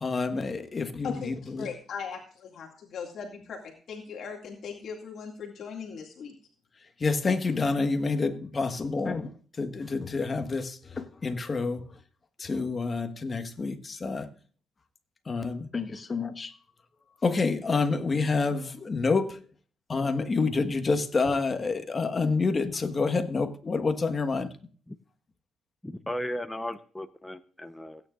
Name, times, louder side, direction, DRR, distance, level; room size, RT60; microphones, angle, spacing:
voice 1, 0.0-1.7 7.0-12.0 12.4-14.3 15.2-16.5 17.2-19.4 19.9-24.5, left 4 dB, 35° left, 1.5 m, -28 dB
voice 2, 1.6-6.3, left 6 dB, 65° left, 2.2 m, -39 dB
voice 3, 25.8-28.0, left 1 dB, 10° left, 0.8 m, -36 dB
17.0 x 9.4 x 2.5 m
cardioid pair, 90°, 0 cm